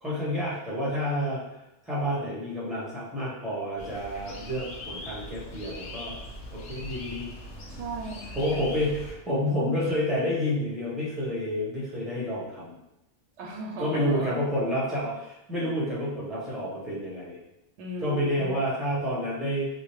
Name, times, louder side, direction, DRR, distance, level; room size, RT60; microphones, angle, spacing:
voice 1, 0.0-1.4 1.9-6.1 6.5-7.2 8.3-12.7 13.8-17.4 18.0-19.7, equal, ahead, -7 dB, 0.8 m, -29 dB
sound 1, 3.8-9.2, left 1 dB, 90° left, 0.9 m, -40 dB
voice 2, 7.7-8.6 13.4-14.4 17.8-18.6, right 2 dB, 90° right, 0 dB, 0.9 m, -37 dB
2.8 x 2.1 x 3.0 m, 0.88 s
omnidirectional pair, 1.2 m